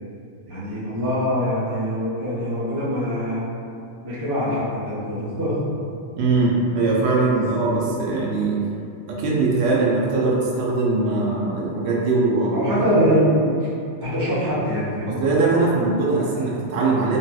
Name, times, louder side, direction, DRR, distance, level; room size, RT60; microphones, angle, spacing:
voice 1, 0.4-3.5 4.0-5.6 7.1-8.0 12.5-13.7 14.0-15.2, equal, 25° right, -12 dB, 1.0 m, -24 dB
voice 2, 6.2-8.6 9.1-12.8 15.1-17.2, right 3 dB, 70° right, -4 dB, 0.9 m, -21 dB
3.0 x 2.7 x 2.3 m, 2.5 s
omnidirectional pair, 1.2 m